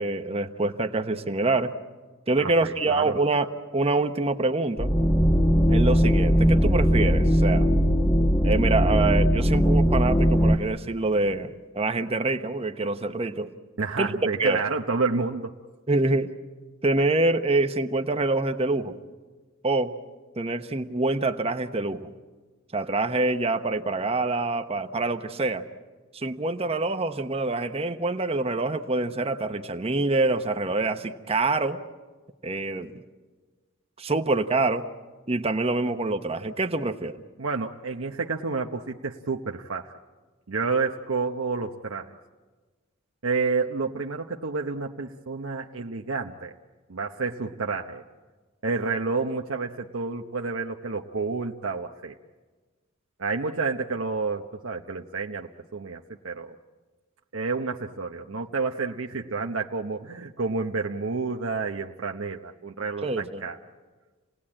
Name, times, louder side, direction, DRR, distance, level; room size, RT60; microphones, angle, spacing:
voice 1, 0.0-1.8 2.3-4.9 5.7-7.7 8.4-13.5 14.0-14.1 14.4-14.6 15.9-16.3 16.8-19.0 19.6-19.9 20.4-22.1 22.7-25.7 26.1-31.8 32.4-33.0 34.0-34.9 35.3-37.2 63.0-63.4, right 2 dB, 30° right, 8 dB, 0.9 m, -26 dB
voice 2, 2.4-3.1 13.8-15.5 37.4-39.9 40.5-42.2 43.2-46.5 46.9-48.0 48.6-52.2 53.2-56.6 57.3-63.6, right 4 dB, 75° right, 2 dB, 0.9 m, -29 dB
sound 1, 4.8-10.6, equal, 15° left, 1.0 m, -20 dB
28.5 x 18.5 x 8.8 m, 1.4 s
head